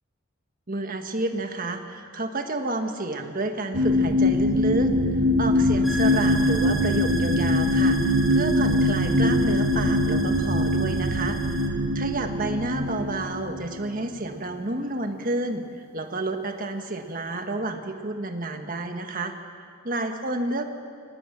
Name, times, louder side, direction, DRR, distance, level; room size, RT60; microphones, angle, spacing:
voice 1, 0.7-4.9 5.4-11.4 11.9-19.3 19.8-20.7, right 2 dB, 40° right, 5 dB, 1.6 m, -30 dB
sound 1, 3.7-13.8 14.4-14.5, left 1 dB, 65° right, 1.5 m, -22 dB
sound 2, 5.8-11.7, right 1 dB, ahead, 1.5 m, -35 dB
24.5 x 18.5 x 7.5 m, 2.3 s
head